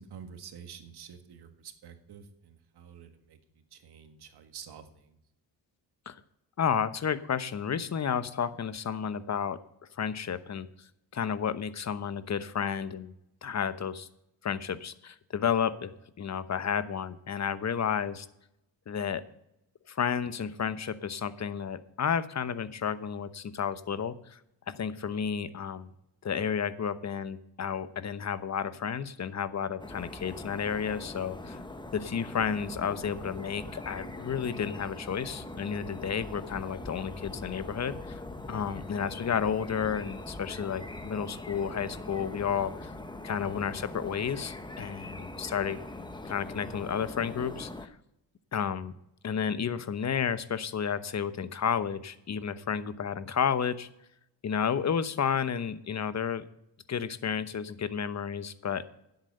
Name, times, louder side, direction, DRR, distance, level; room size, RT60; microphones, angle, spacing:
voice 1, 0.0-5.2, right 7 dB, 60° right, 7 dB, 1.8 m, -49 dB
voice 2, 6.6-9.6 10.0-10.7 11.1-13.1 13.4-14.1 14.4-15.9 16.2-18.3 18.9-19.2 19.9-24.4 24.7-25.9 26.2-31.6 31.9-38.2 38.5-42.9 43.2-45.8 46.2-47.9 48.5-48.9 49.2-53.9 54.4-56.5 56.9-58.8, left 7 dB, 40° left, 13 dB, 1.0 m, -31 dB
sound 1, 29.8-47.9, left 2 dB, 10° left, 1.2 m, -42 dB
10.5 x 8.2 x 6.8 m, 0.82 s
cardioid pair, 75°, 44 cm